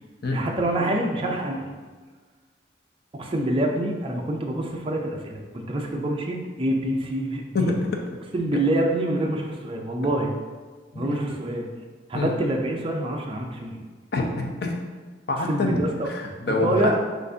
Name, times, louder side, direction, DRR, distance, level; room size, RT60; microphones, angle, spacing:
voice 1, 0.3-1.7 3.1-7.7 8.3-10.3 11.0-11.7 12.1-13.8 15.5-16.1 16.5-16.9, right 1 dB, 30° right, 0 dB, 0.4 m, -26 dB
voice 2, 7.5-8.0 10.9-11.2 12.1-12.3 14.1-14.8 15.3-15.8 16.0-16.9, left 2 dB, 55° left, 2 dB, 0.6 m, -26 dB
6.3 x 2.5 x 2.7 m, 1.4 s
head